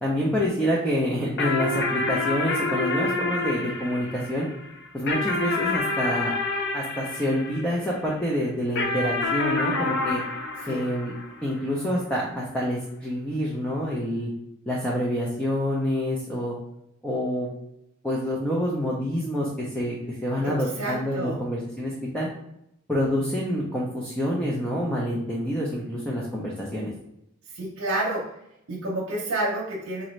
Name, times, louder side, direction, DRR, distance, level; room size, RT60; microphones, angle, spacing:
voice 1, 0.0-4.5 4.9-6.3 6.7-10.2 10.7-11.1 11.4-14.3 14.7-16.6 17.0-17.5 18.0-20.0 20.2-22.3 22.9-26.9, equal, 5° left, -5 dB, 0.5 m, -27 dB
sound 1, 1.4-8.1 8.8-11.6, left 3 dB, 55° left, 0.6 m, -28 dB
voice 2, 20.8-21.4 27.6-28.3 28.7-30.0, right 2 dB, 80° right, -4 dB, 0.7 m, -29 dB
4.0 x 2.5 x 3.1 m, 0.81 s
head